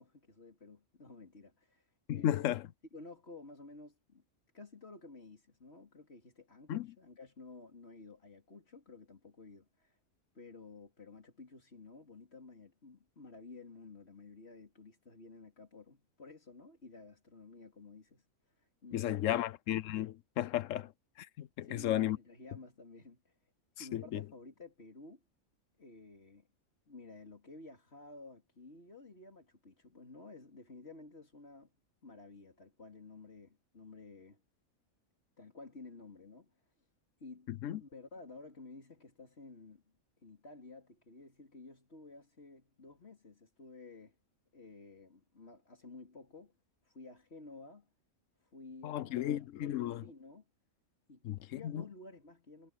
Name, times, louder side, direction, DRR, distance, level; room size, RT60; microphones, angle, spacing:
voice 1, 0.0-2.6 2.9-4.2 4.5-10.0 10.3-19.4 21.6-23.4 23.8-25.2 25.8-26.5 26.9-31.8 32.0-34.4 35.4-36.9 37.2-39.8 40.2-44.2 44.5-46.5 46.8-47.9 48.4-50.5 51.1-52.7, left 3 dB, 50° left, 3.5 m, -53 dB
voice 2, 2.1-2.7 6.7-6.9 18.9-20.9 21.2-22.2 23.8-24.2 37.5-37.8 48.8-50.0 51.2-51.8, left 12 dB, 70° left, 1.0 m, -34 dB
omnidirectional pair, 1.4 m